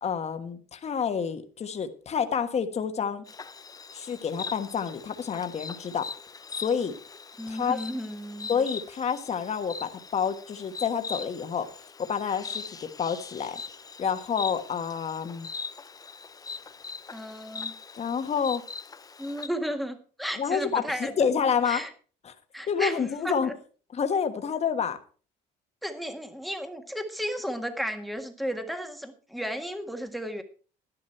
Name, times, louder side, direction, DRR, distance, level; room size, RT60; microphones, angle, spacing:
voice 1, 0.0-3.2 3.9-6.1 6.5-6.9 7.5-7.8 8.5-11.7 12.0-13.6 14.0-15.5 18.0-18.6 20.4-21.8 22.2-22.3 22.7-23.5 23.9-25.0, left 7 dB, 40° left, 8 dB, 1.4 m, -28 dB
Insect, 3.3-19.5, left 5 dB, 20° left, 0.6 m, -41 dB
voice 2, 7.4-8.5 17.1-17.7 19.2-21.1 21.6-21.9 22.5-23.5 25.8-30.4, equal, ahead, 6 dB, 1.6 m, -34 dB
11.5 x 11.0 x 4.5 m, 0.39 s
cardioid pair, 110°, 17 cm